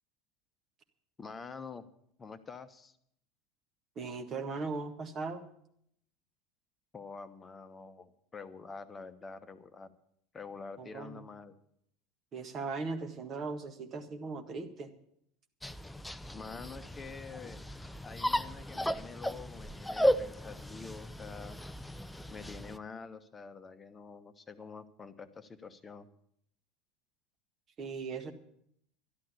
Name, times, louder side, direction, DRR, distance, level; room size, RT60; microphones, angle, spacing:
voice 1, 1.2-1.9 2.2-3.0 6.9-9.9 10.3-11.5 16.3-17.6 18.0-21.6 22.3-26.1, left 5 dB, 20° left, 11 dB, 1.1 m, -47 dB
voice 2, 4.0-5.5 10.8-11.2 12.3-14.9 27.8-28.3, right 4 dB, 35° right, 5 dB, 1.7 m, -38 dB
sound 1, 15.6-22.8, equal, 5° left, 0.5 m, -35 dB
12.5 x 11.5 x 6.9 m, 0.70 s
figure-of-eight pair, 75°, 0 cm